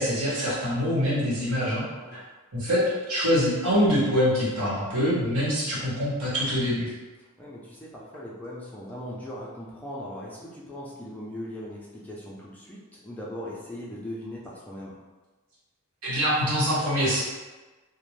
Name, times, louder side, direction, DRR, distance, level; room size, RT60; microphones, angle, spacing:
voice 1, 0.0-1.8 2.1-2.2 2.5-6.9 16.0-17.2, equal, 80° right, -8 dB, 1.1 m, -24 dB
voice 2, 7.4-15.0, left 1 dB, 5° left, -6 dB, 0.4 m, -39 dB
2.5 x 2.1 x 3.1 m, 1.2 s
head